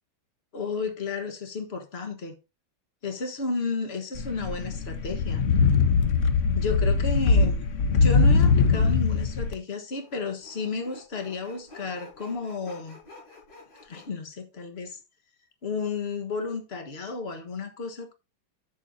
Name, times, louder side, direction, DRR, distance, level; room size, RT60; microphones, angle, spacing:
voice 1, 0.5-2.4 3.0-5.4 6.6-13.0 13.8-15.0 15.6-18.1, left 4 dB, 35° left, 1.4 m, -32 dB
sound 1, 4.2-9.5, left 4 dB, 90° left, 0.6 m, -21 dB
Sawing, 9.9-14.1, left 3 dB, 60° left, 5.8 m, -49 dB
10.5 x 7.7 x 2.7 m
omnidirectional pair, 2.3 m